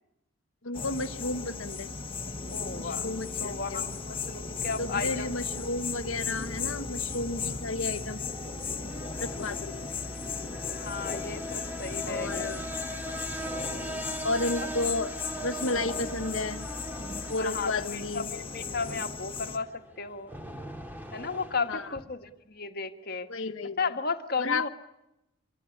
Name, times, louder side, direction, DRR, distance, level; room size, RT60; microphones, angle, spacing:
voice 1, 0.6-1.9 2.7-3.9 4.8-8.2 9.2-9.8 12.0-12.6 14.2-15.1 15.4-16.7 17.3-18.3 21.7-21.9 23.3-23.9 24.4-24.7, left 2 dB, 70° left, 9 dB, 1.2 m, -32 dB
sound 1, 0.7-19.6, left 4 dB, 25° left, 1.6 m, -36 dB
sound 2, 2.2-22.0, equal, 10° right, 2.3 m, -42 dB
voice 2, 2.5-3.1 3.4-5.3 7.1-7.6 10.7-12.5 14.6-14.7 15.7-15.8 17.4-20.3 21.1-23.3 23.8-24.7, left 4 dB, 45° left, 7 dB, 1.8 m, -34 dB
26.5 x 23.0 x 8.6 m, 0.87 s
head